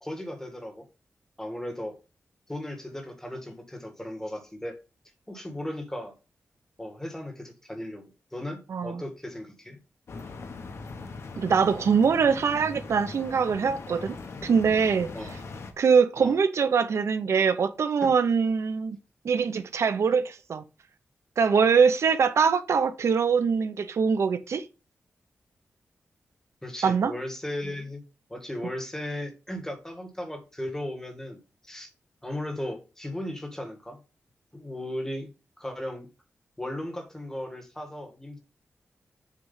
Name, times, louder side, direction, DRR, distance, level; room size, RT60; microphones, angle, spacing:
voice 1, 0.0-0.9 1.4-2.0 2.5-4.8 5.3-6.1 6.8-9.8 15.1-15.3 16.2-16.4 18.0-18.1 26.6-28.0 28.3-31.9 32.2-34.0 34.5-35.3 35.6-36.1 36.6-38.4, left 1 dB, 10° left, 1.9 m, -36 dB
voice 2, 8.7-9.0 11.4-15.1 15.8-19.0 19.2-20.6 21.4-24.6 26.8-27.1, right 6 dB, 75° right, 0.6 m, -23 dB
sound 1, 10.1-15.7, left 4 dB, 70° left, 1.1 m, -40 dB
7.5 x 3.2 x 5.5 m
wide cardioid pair, 115°, 5 cm